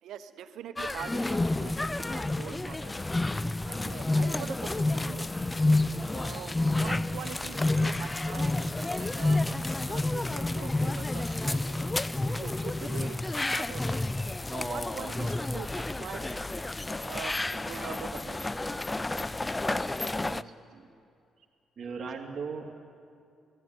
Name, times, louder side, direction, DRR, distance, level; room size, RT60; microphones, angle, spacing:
voice 1, 0.0-3.0 3.7-5.3 6.1-9.4 9.8-12.0 12.3-14.0 14.5-16.5 17.0-18.5, right 9 dB, 75° right, 9 dB, 1.0 m, -43 dB
sound 1, 0.8-20.4, left 2 dB, 15° left, 0.4 m, -30 dB
voice 2, 20.2-20.8 21.8-22.8, right 5 dB, 45° right, 1 dB, 2.7 m, -39 dB
19.0 x 15.5 x 9.1 m, 2.4 s
cardioid pair, 90°, 0 cm